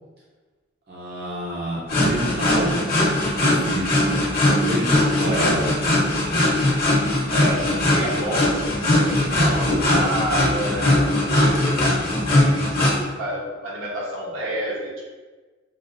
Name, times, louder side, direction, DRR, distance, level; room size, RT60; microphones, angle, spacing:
voice 1, 0.9-2.7 3.4-6.4, equal, 55° right, -7 dB, 0.7 m, -30 dB
sound 1, 1.9-13.0, left 1 dB, 50° left, 0.9 m, -20 dB
voice 2, 5.2-5.6 7.3-15.0, right 1 dB, 75° right, -5 dB, 1.0 m, -30 dB
5.6 x 2.0 x 2.5 m, 1.3 s
head